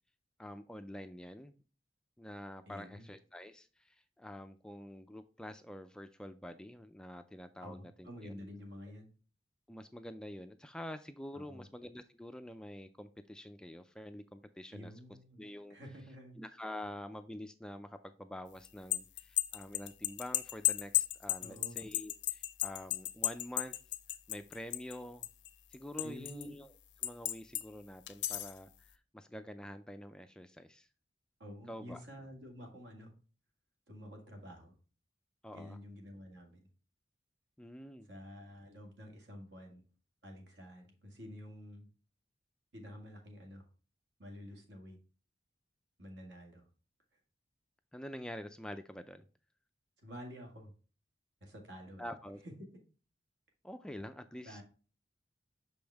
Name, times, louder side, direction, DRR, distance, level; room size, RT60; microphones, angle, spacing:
voice 1, 0.4-1.5 2.2-8.4 9.7-14.9 15.4-15.8 16.4-23.7 24.3-25.3 25.7-26.7 27.0-30.9 31.7-32.0 35.4-35.8 37.6-38.1 47.9-49.2 52.0-52.4 53.6-54.6, left 1 dB, 5° left, 9 dB, 0.3 m, -47 dB
voice 2, 2.7-3.1 7.6-9.1 11.3-11.7 14.7-15.4 15.7-16.4 21.4-21.8 26.0-26.5 31.4-33.1 33.9-34.8 35.5-36.7 38.1-39.8 40.2-41.9 42.7-43.6 44.2-45.0 46.0-46.6 50.0-50.7 51.4-52.1 52.4-52.5 54.4-54.6, equal, 70° right, 2 dB, 1.9 m, -49 dB
sound 1, 18.6-25.0 25.2-26.4 27.0-27.6 28.1-28.6, left 15 dB, 75° left, 0.5 m, -34 dB
6.2 x 5.2 x 3.4 m, 0.37 s
head